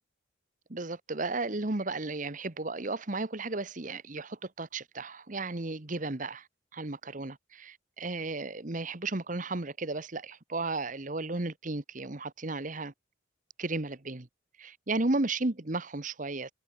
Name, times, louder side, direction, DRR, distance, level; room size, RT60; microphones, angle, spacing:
voice 1, 0.7-6.5 6.7-12.9 13.6-14.3 14.6-16.5, right 2 dB, 40° right, 1.3 m, -34 dB
head